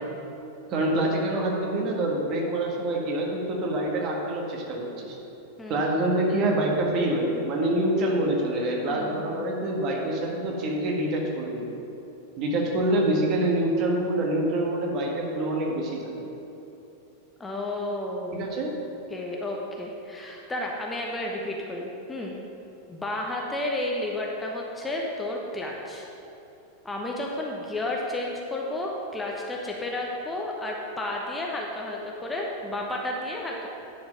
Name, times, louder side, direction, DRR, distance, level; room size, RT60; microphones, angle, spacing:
voice 1, 0.7-5.2 5.7-11.7 12.4-16.3 18.3-18.8, right 1 dB, 35° right, -1 dB, 1.6 m, -26 dB
voice 2, 8.9-9.4 17.4-18.4 19.1-22.3 22.9-26.1 26.8-33.7, left 1 dB, 10° left, -1 dB, 1.0 m, -32 dB
10.5 x 5.0 x 5.6 m, 2.9 s
figure-of-eight pair, 90°, 0 cm